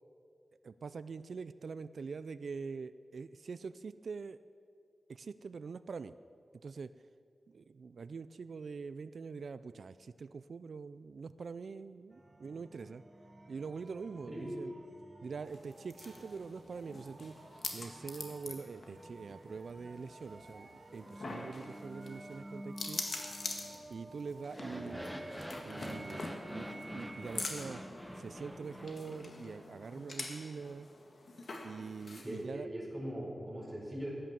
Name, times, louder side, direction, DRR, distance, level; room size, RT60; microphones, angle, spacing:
voice 1, 0.6-4.4 5.1-6.1 6.6-6.9 7.5-13.0 13.5-14.7 15.2-17.4 17.7-23.1 23.9-25.0 25.6-27.8 28.2-30.9 31.6-32.7, right 5 dB, 80° right, 14 dB, 0.4 m, -44 dB
sound 1, 12.1-29.6, right 1 dB, 35° right, 1.3 m, -52 dB
sound 2, 15.5-32.5, left 3 dB, 65° left, 1.7 m, -46 dB
sound 3, 24.4-29.6, equal, 5° left, 1.3 m, -46 dB
voice 2, 24.7-25.1 32.2-34.1, equal, 10° right, -6 dB, 4.9 m, -41 dB
15.0 x 10.0 x 7.3 m, 2.3 s
wide cardioid pair, 100°, 0 cm